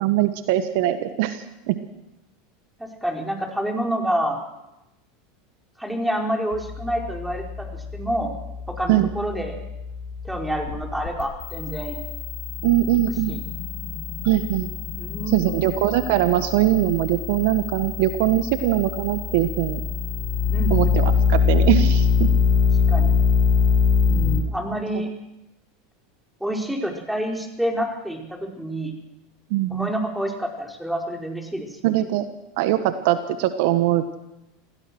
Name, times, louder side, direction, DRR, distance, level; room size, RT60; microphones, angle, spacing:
voice 1, 0.0-1.8 8.9-9.1 12.6-13.3 14.2-14.7 15.3-19.8 20.7-22.3 29.5-29.9 31.8-32.3 32.6-34.2, right 13 dB, 65° right, 10 dB, 1.4 m, -22 dB
voice 2, 2.8-4.4 5.8-8.3 8.7-9.6 10.2-12.0 13.3-13.4 15.0-15.7 20.5-20.9 22.9-23.2 24.1-25.1 26.4-28.9 29.7-31.9, right 1 dB, 5° right, 2 dB, 4.8 m, -28 dB
sound 1, 6.5-24.4, left 5 dB, 65° left, 5.6 m, -24 dB
26.5 x 17.0 x 6.3 m, 0.93 s
hypercardioid pair, 85°, 0 cm